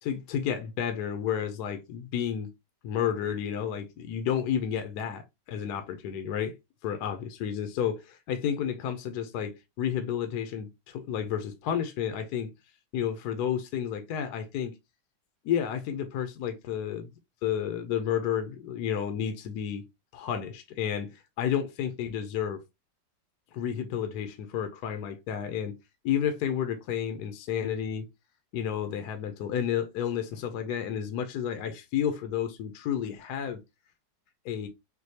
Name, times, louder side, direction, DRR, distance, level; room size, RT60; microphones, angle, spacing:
voice 1, 0.0-2.5 2.8-6.5 6.8-12.5 12.9-14.7 15.4-17.1 17.4-19.8 20.1-22.6 23.5-25.7 26.0-28.1 28.5-33.6 34.4-34.7, left 9 dB, 70° left, 1.1 m, -31 dB
6.4 x 2.3 x 2.7 m
omnidirectional pair, 2.0 m